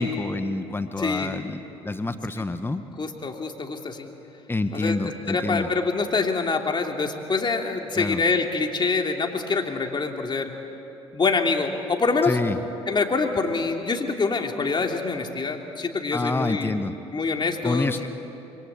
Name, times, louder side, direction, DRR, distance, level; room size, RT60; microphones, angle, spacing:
voice 1, 0.0-2.8 4.5-5.7 7.9-8.2 12.2-12.6 16.1-17.0 17.6-18.1, left 2 dB, 15° left, 9 dB, 1.4 m, -27 dB
voice 2, 1.0-1.4 3.0-4.1 4.7-5.0 5.3-10.5 11.1-12.4 12.9-16.8 17.1-18.1, left 4 dB, 35° left, 3 dB, 3.1 m, -25 dB
27.0 x 22.5 x 8.4 m, 3.0 s
hypercardioid pair, 55°, 14 cm